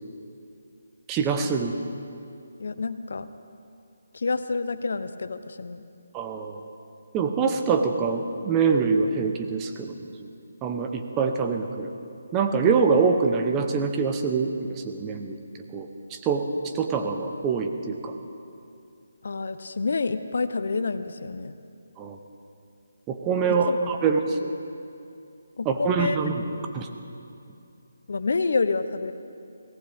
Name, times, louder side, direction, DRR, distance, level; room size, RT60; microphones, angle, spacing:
voice 1, 1.1-1.8 6.1-6.6 7.1-10.3 10.6-11.9 12.3-15.4 15.7-18.1 22.0-22.2 23.1-24.5 25.6-26.4 26.7-26.9, right 5 dB, 15° right, 5 dB, 0.9 m, -25 dB
voice 2, 2.6-3.3 4.1-5.8 19.2-21.5 23.5-23.8 25.6-26.2 28.1-29.1, left 4 dB, 65° left, 12 dB, 0.7 m, -28 dB
23.0 x 17.5 x 3.6 m, 2.6 s
figure-of-eight pair, 160°, 0 cm